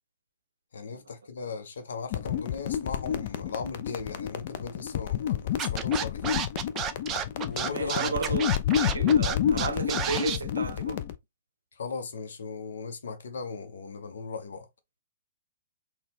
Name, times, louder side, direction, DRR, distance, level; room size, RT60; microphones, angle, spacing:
voice 1, 0.7-6.4 7.4-8.4 11.8-14.7, left 5 dB, 60° left, 0.8 m, -37 dB
sound 1, 2.1-11.2, left 9 dB, 45° left, 0.5 m, -29 dB
Scratching (performance technique), 5.6-10.4, right 8 dB, 25° right, 0.5 m, -31 dB
voice 2, 7.7-8.5 8.8-11.0, right 4 dB, 70° right, 0.6 m, -33 dB
4.1 x 2.3 x 3.5 m
figure-of-eight pair, 110°, 0 cm